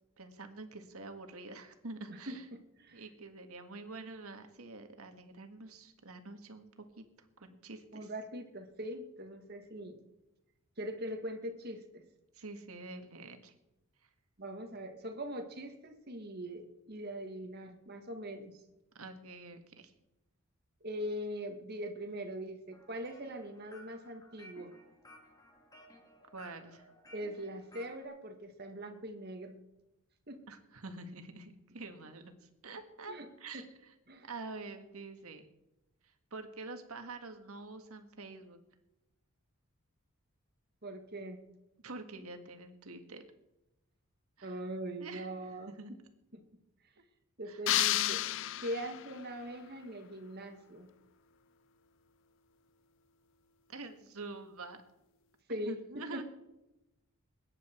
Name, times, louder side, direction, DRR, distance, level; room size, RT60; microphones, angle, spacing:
voice 1, 0.2-2.5 2.9-8.1 12.3-13.5 14.0-14.1 19.0-19.9 26.3-26.9 30.5-33.9 34.2-35.4 36.0-38.6 41.8-43.2 44.4-44.6 45.0-45.9 47.5-47.6 53.7-54.8 55.5-56.2, right 3 dB, 75° right, 6 dB, 1.8 m, -47 dB
voice 2, 2.1-3.0 7.9-10.0 10.8-12.0 14.4-18.6 20.8-24.7 27.1-29.6 30.3-30.4 33.1-33.3 33.5-33.6 34.1-34.3 40.8-41.4 44.4-45.7 46.3-46.4 47.4-48.2 48.6-50.9 55.5-56.2, equal, 45° right, 6 dB, 1.8 m, -42 dB
sound 1, 22.7-28.0, left 1 dB, 15° left, 2.3 m, -57 dB
sound 2, 47.7-49.2, left 13 dB, 55° left, 0.4 m, -31 dB
21.0 x 10.0 x 4.5 m, 0.93 s
head